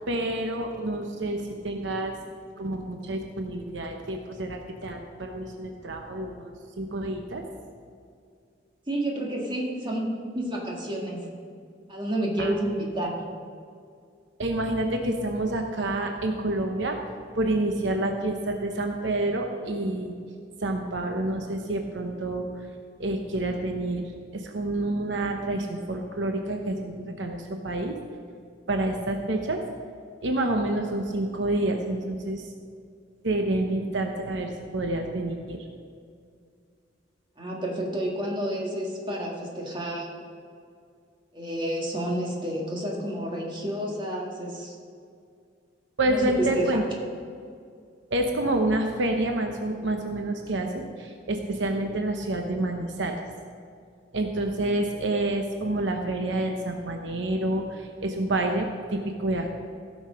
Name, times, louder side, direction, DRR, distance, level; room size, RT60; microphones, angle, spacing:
voice 1, 0.1-2.1 2.6-7.4 12.4-12.5 14.4-17.0 17.3-20.1 20.6-22.5 23.0-24.0 24.3-28.0 28.7-29.6 30.2-32.4 33.2-35.6 46.0-46.8 48.1-53.1 54.1-59.5, right 1 dB, 75° right, 3 dB, 0.9 m, -28 dB
voice 2, 8.9-11.2 11.9-13.1 37.4-40.1 41.3-44.8 46.1-46.8, right 1 dB, 25° right, -2 dB, 1.9 m, -30 dB
15.5 x 6.3 x 5.1 m, 2.3 s
head